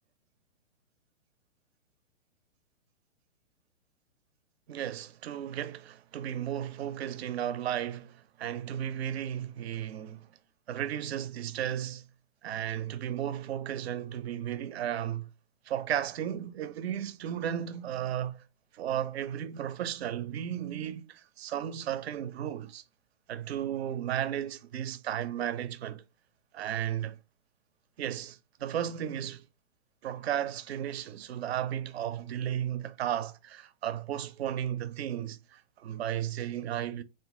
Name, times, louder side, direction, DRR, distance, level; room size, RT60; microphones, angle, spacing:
voice 1, 4.7-10.3 10.7-12.0 12.4-15.3 15.7-18.4 18.7-22.8 23.3-26.0 26.5-27.2 28.0-29.4 30.0-37.0, right 10 dB, 60° right, 0.6 m, -34 dB
3.6 x 2.6 x 3.6 m
hypercardioid pair, 130°, 35 cm